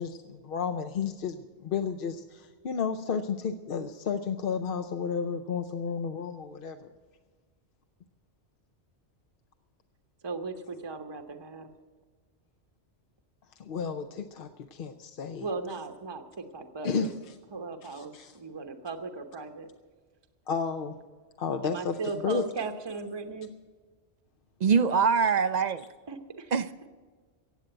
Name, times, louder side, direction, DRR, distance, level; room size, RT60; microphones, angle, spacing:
voice 1, 0.0-6.9 13.6-15.5 16.8-17.1 17.9-18.3 20.5-21.0 21.4-22.0 22.2-22.4, left 6 dB, 60° left, 0.8 m, -32 dB
voice 2, 10.2-11.7 15.4-17.1 17.5-19.7 21.6-23.5 26.1-26.5, right 4 dB, 25° right, 0.9 m, -37 dB
voice 3, 24.6-25.8 26.5-26.9, right 6 dB, 55° right, 0.5 m, -24 dB
15.5 x 8.7 x 7.9 m
omnidirectional pair, 1.1 m